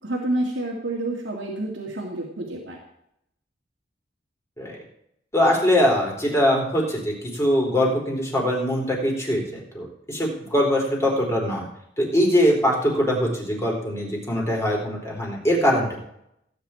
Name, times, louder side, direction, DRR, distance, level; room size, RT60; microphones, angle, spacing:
voice 1, 0.0-2.8, right 1 dB, 90° right, -2 dB, 2.5 m, -28 dB
voice 2, 5.3-11.6 12.0-16.0, equal, 15° left, -2 dB, 4.0 m, -22 dB
17.0 x 9.2 x 4.5 m, 0.75 s
head